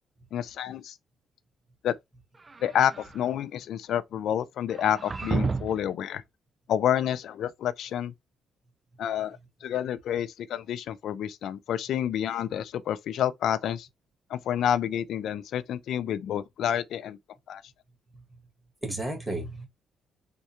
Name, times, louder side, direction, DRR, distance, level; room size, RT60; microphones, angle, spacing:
voice 1, 0.3-1.0 1.8-1.9 2.6-6.2 6.7-8.1 9.0-13.9 14.3-17.2 17.5-17.6, left 10 dB, 75° left, 0.4 m, -29 dB
sound 1, 2.3-3.2 4.7-5.9, right 4 dB, 25° right, 0.4 m, -32 dB
voice 2, 18.1-18.5 18.8-19.7, right 2 dB, 5° right, 1.7 m, -34 dB
3.6 x 2.2 x 4.3 m
cardioid pair, 90°, 0 cm